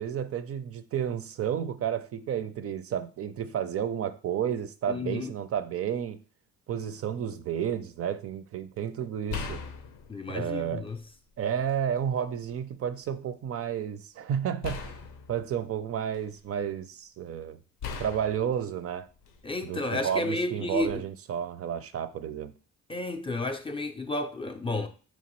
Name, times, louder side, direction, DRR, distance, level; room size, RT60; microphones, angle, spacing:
voice 1, 0.0-6.2 6.7-9.6 10.3-10.9 11.4-14.9 15.3-17.6 18.0-19.1 19.6-22.5, right 9 dB, 50° right, 0.4 m, -31 dB
voice 2, 4.9-5.3 10.1-11.0 19.4-21.1 22.9-24.9, left 2 dB, 20° left, 0.4 m, -32 dB
sound 1, 7.5-7.7 9.3-11.1 11.6-12.5 14.6-16.6 17.8-19.7 20.8-21.0, left 5 dB, 85° left, 0.6 m, -41 dB
4.5 x 2.9 x 3.0 m
cardioid pair, 90°, 30 cm